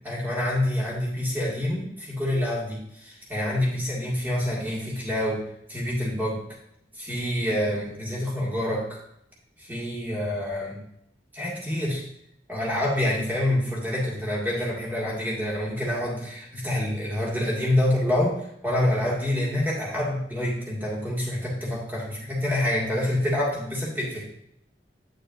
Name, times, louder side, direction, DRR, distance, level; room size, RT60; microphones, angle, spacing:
voice 1, 0.0-5.4 5.7-6.4 7.0-9.0 9.6-10.8 11.3-12.0 12.5-18.4 18.6-24.3, left 1 dB, 10° right, -4 dB, 2.0 m, -27 dB
8.9 x 6.6 x 2.6 m, 0.73 s
head